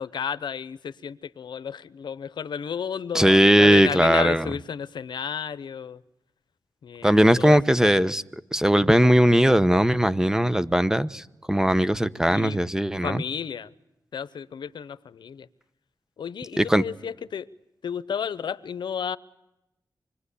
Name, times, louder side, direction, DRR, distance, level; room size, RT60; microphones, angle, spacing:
voice 1, 0.0-6.0 6.8-7.9 12.3-12.6 13.0-13.7 14.1-15.5 16.2-17.5 17.8-19.2, left 7 dB, 85° left, 15 dB, 0.8 m, -32 dB
voice 2, 3.1-4.5 7.0-13.2 16.6-16.8, equal, 10° right, 14 dB, 0.9 m, -19 dB
25.5 x 21.5 x 8.4 m, 0.91 s
cardioid pair, 70°, 8 cm